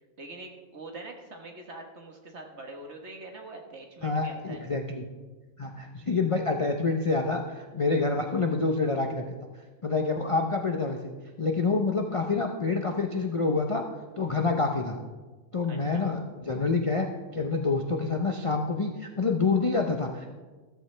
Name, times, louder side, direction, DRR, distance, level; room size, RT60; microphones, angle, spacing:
voice 1, 0.2-4.6 15.7-16.0, right 2 dB, 50° right, 2 dB, 1.6 m, -44 dB
voice 2, 4.0-5.1 5.6-9.3 9.8-11.0 11.4-13.8 14.2-15.0 15.5-17.1 17.3-20.3, left 3 dB, 35° left, 3 dB, 0.5 m, -27 dB
14.0 x 14.0 x 3.3 m, 1.3 s
omnidirectional pair, 1.6 m